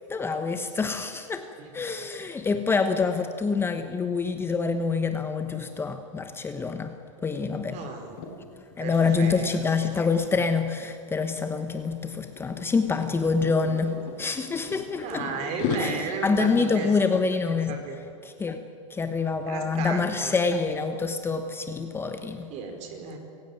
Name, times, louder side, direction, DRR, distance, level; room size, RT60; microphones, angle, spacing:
voice 1, 0.1-1.5 1.7-7.0 7.2-7.9 8.8-15.3 15.7-17.8 18.2-18.6 18.9-22.5, left 4 dB, 15° left, 8 dB, 1.1 m, -26 dB
voice 2, 7.7-8.2 8.8-9.5 15.0-16.9 17.7-18.0 19.5-20.3 22.5-23.2, right 5 dB, 40° right, 5 dB, 4.6 m, -34 dB
sound 1, 8.0-8.3 8.7-8.9 9.2-11.1 11.8-12.1 12.4-14.2 14.7-15.8, left 9 dB, 45° left, 5.2 m, -35 dB
26.0 x 16.0 x 9.2 m, 2.6 s
hypercardioid pair, 130°, 17 cm